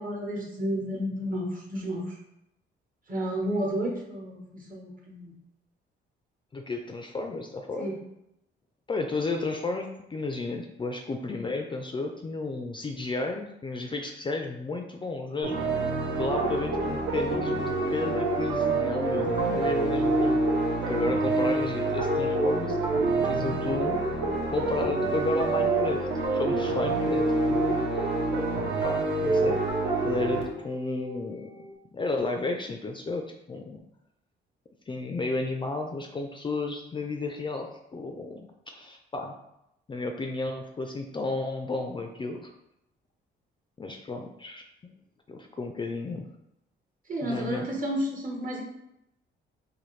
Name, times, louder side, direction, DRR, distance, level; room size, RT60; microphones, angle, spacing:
voice 1, 0.0-2.2 3.1-5.3 7.8-7.9 47.1-48.6, equal, 45° right, -1 dB, 1.2 m, -31 dB
voice 2, 6.5-7.9 8.9-15.6 16.1-20.4 20.9-22.8 23.2-24.2 24.5-28.1 28.8-29.6 30.0-31.5 31.9-33.8 34.9-39.4 39.9-42.5 43.8-44.6 45.3-46.3 47.2-47.7, left 2 dB, 25° left, 3 dB, 0.3 m, -32 dB
sound 1, 15.4-30.4, right 3 dB, 80° right, 0.9 m, -29 dB
sound 2, 16.4-31.7, right 2 dB, 25° right, 0.6 m, -30 dB
4.0 x 2.6 x 3.1 m, 0.84 s
cardioid pair, 90°, 20 cm